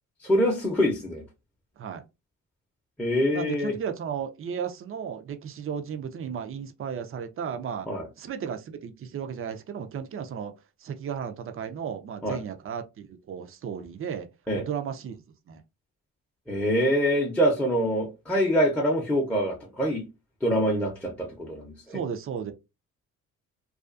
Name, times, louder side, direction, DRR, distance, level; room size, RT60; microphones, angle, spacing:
voice 1, 0.2-1.2 3.0-3.7 7.9-8.1 12.2-12.4 14.5-14.6 16.5-20.0 20.4-22.0, equal, 5° left, 0.7 m, -25 dB
voice 2, 3.3-7.9 8.2-10.5 10.8-14.3 14.5-15.6 21.9-22.5, right 7 dB, 45° right, 0.5 m, -34 dB
2.4 x 2.4 x 2.4 m
cardioid pair, 90°, 30 cm